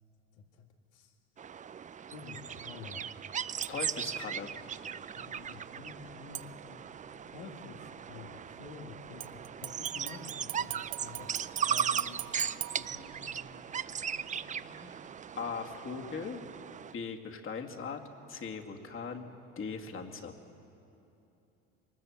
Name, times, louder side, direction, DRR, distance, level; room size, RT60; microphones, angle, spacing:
voice 1, 0.3-0.6 0.9-1.1 2.1-3.1 5.2-6.9 7.3-12.3 12.7-15.0, left 5 dB, 85° left, 3 dB, 2.2 m, -50 dB
sound 1, 1.4-16.9, right 8 dB, 25° right, 0.5 m, -38 dB
sound 2, 3.6-4.1 6.3-7.1 9.2-13.6 14.0-14.1, right 14 dB, 50° right, 0.8 m, -43 dB
voice 2, 3.7-4.5 15.4-16.4 16.9-18.0 18.3-19.3 19.6-20.3, left 5 dB, 40° left, 3 dB, 2.2 m, -39 dB
23.0 x 19.5 x 7.2 m, 2.9 s
supercardioid pair, 90°, 32 cm